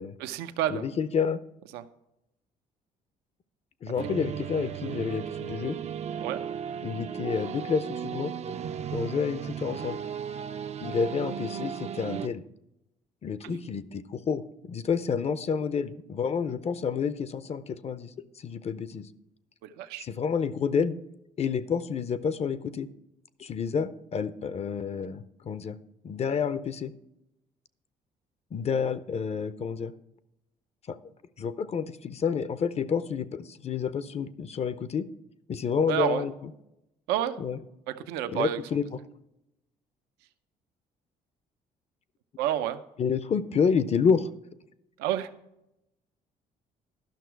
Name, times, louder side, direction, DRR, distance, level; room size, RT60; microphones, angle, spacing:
voice 1, 0.2-0.8 1.7-1.8 6.2-6.4 13.4-13.6 19.6-20.0 35.9-36.2 37.1-37.4 37.9-38.6 42.4-42.8 45.0-45.3, right 11 dB, 85° right, 10 dB, 0.6 m, -29 dB
voice 2, 0.7-1.4 3.8-5.8 6.8-8.3 8.9-10.0 10.8-12.4 13.2-18.1 18.4-19.1 20.0-21.0 21.4-22.9 23.4-25.8 26.0-26.9 28.5-29.9 30.9-31.0 31.4-35.1 35.5-36.5 37.4-37.6 38.3-38.8 43.0-44.3, left 6 dB, 40° left, 15 dB, 0.6 m, -29 dB
sound 1, 4.0-12.3, right 8 dB, 45° right, 0.4 m, -35 dB
12.0 x 6.0 x 4.6 m, 0.88 s
supercardioid pair, 75°, 16 cm